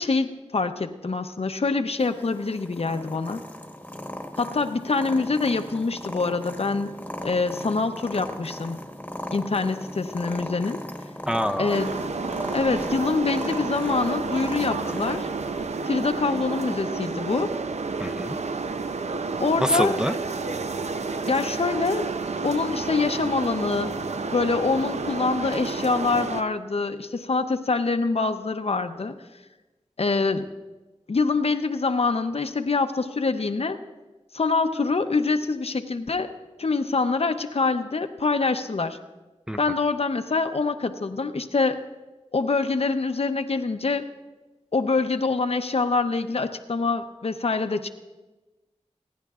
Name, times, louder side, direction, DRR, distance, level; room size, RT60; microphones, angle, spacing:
voice 1, 0.0-3.4 4.4-6.9 7.2-8.8 9.3-10.8 11.6-11.9 12.5-15.3 15.8-17.6 19.4-20.0 21.3-22.1 22.4-24.0 24.3-29.1 30.0-30.5 31.1-33.8 34.3-36.3 36.6-39.0 39.6-41.8 42.3-44.1 44.7-47.9, left 4 dB, 60° left, 8 dB, 0.7 m, -25 dB
Purr, 2.0-15.9, left 1 dB, 15° left, 1.1 m, -38 dB
voice 2, 11.3-11.8 18.0-18.4 19.6-20.1 39.5-39.6, equal, 5° right, 6 dB, 0.5 m, -25 dB
sound 1, 11.7-26.4, right 4 dB, 75° right, 0.5 m, -30 dB
27.0 x 10.5 x 2.4 m, 1.2 s
wide cardioid pair, 65°, 12 cm